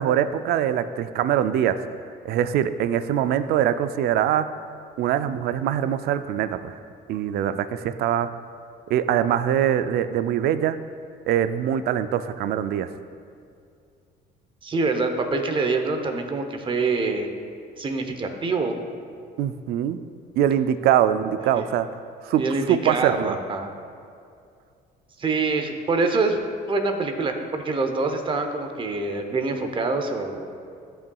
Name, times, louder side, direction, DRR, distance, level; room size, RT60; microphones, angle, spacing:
voice 1, 0.0-1.8 2.2-4.5 5.0-6.8 7.1-8.3 8.9-10.8 11.3-12.9 19.4-20.0 20.4-21.9 22.2-23.3, right 10 dB, 70° right, 12 dB, 0.4 m, -23 dB
voice 2, 14.6-17.3 17.8-18.8 21.5-21.6 22.4-23.7 25.2-26.4 26.7-30.4, right 3 dB, 30° right, 5 dB, 0.8 m, -25 dB
12.0 x 5.6 x 2.3 m, 2.4 s
cardioid pair, 110°, 17 cm